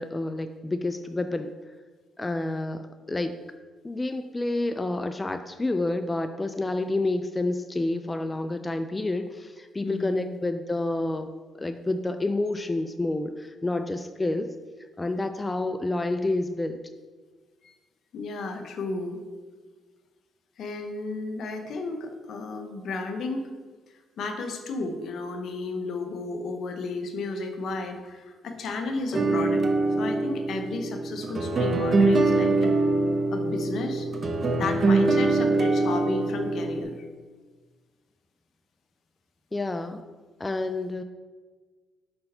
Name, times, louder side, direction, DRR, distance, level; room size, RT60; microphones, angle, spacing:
voice 1, 0.0-1.5 2.2-3.3 3.8-14.6 15.0-16.8 39.5-40.0 40.4-41.0, left 2 dB, 20° left, 8 dB, 0.3 m, -29 dB
voice 2, 9.8-10.4 17.6-17.7 18.1-19.2 20.6-23.5 24.2-29.6 30.0-32.7 33.3-34.1 34.6-36.9, left 3 dB, 65° left, 5 dB, 0.8 m, -33 dB
sound 1, 29.1-36.8, right 3 dB, 40° right, 0.8 m, -24 dB
5.3 x 4.4 x 5.5 m, 1.4 s
cardioid pair, 90°, 0 cm